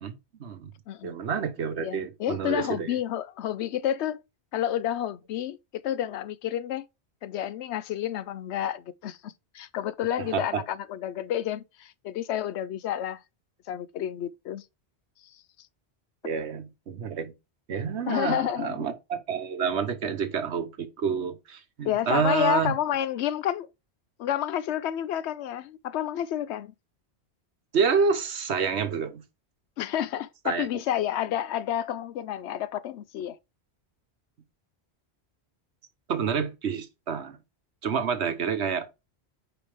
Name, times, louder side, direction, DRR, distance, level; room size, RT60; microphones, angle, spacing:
voice 1, 0.0-0.7 1.0-2.9 10.3-10.6 16.2-17.3 17.7-22.7 27.7-29.2 30.4-30.7 36.1-37.4 37.8-38.9, right 6 dB, 90° right, 1.3 m, -28 dB
voice 2, 1.8-4.2 4.5-6.9 7.2-13.2 13.7-14.6 15.3-15.4 18.1-18.8 21.8-23.7 24.2-26.7 29.8-33.4, left 11 dB, 85° left, 0.9 m, -30 dB
6.9 x 5.2 x 3.4 m
omnidirectional pair, 1.1 m